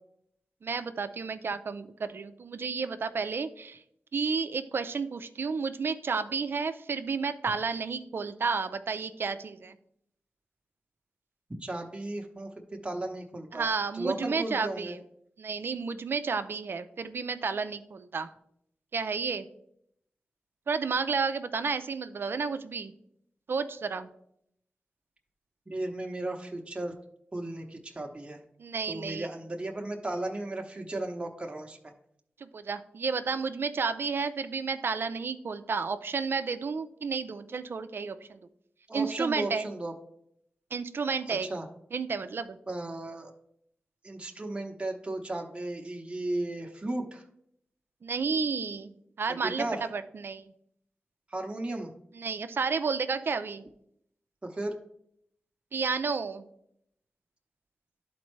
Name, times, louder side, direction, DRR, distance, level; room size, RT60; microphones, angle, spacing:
voice 1, 0.6-3.8 4.1-9.8 13.5-15.0 15.4-18.3 18.9-19.5 20.7-22.9 23.5-24.1 28.6-29.3 32.4-38.4 38.9-39.7 40.7-41.5 41.9-42.6 48.0-50.5 52.1-53.7 55.7-56.4, right 5 dB, 65° right, 11 dB, 0.5 m, -31 dB
voice 2, 11.6-14.9 25.7-26.9 27.3-28.4 28.9-31.9 38.9-39.9 41.3-41.7 42.7-43.3 44.0-47.2 49.3-49.8 51.3-51.9 54.4-54.7, right 2 dB, 25° right, 1 dB, 0.9 m, -35 dB
11.0 x 4.3 x 3.2 m, 0.73 s
cardioid pair, 55°, 4 cm